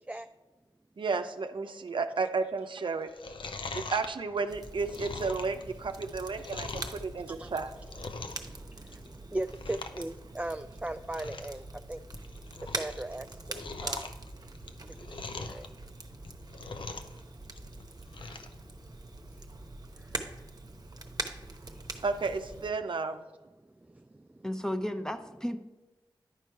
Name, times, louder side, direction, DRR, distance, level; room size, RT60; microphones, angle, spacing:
voice 1, 1.0-3.1 3.7-7.7 22.0-23.2, right 4 dB, 65° right, 8 dB, 0.6 m, -32 dB
Chewing mastication, 3.0-7.0 7.5-8.5 8.8-9.2 9.5-10.0 10.3-10.4 10.8-10.9 11.1-11.6 12.0-13.0 13.3-15.7 16.1-17.2 17.5-18.5 18.9-19.0, left 3 dB, 65° left, 0.6 m, -41 dB
Crackle, 4.5-22.7, right 2 dB, 45° right, 0.9 m, -43 dB
voice 2, 7.3-7.6 8.1-12.0 12.6-14.1 14.9-15.7 20.0-20.3 21.7-21.8 23.9-24.5, right 1 dB, 15° right, 8 dB, 0.3 m, -39 dB
voice 3, 24.4-25.6, left 1 dB, 5° left, 8 dB, 0.8 m, -33 dB
10.5 x 4.5 x 4.6 m, 1.2 s
cardioid pair, 40°, 9 cm